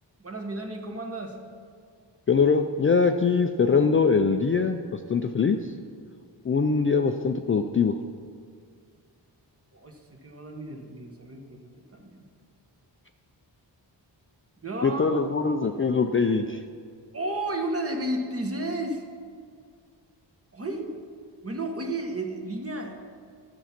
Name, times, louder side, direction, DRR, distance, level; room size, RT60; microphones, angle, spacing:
voice 1, 0.2-1.4 9.7-12.3 14.6-15.1 17.1-19.0 20.5-20.9 21.4-22.9, right 1 dB, 30° right, 3 dB, 1.2 m, -32 dB
voice 2, 2.3-5.6 6.4-8.0 14.8-16.6, left 5 dB, 30° left, 6 dB, 0.4 m, -23 dB
12.5 x 7.0 x 5.9 m, 2.1 s
wide cardioid pair, 145°, 44 cm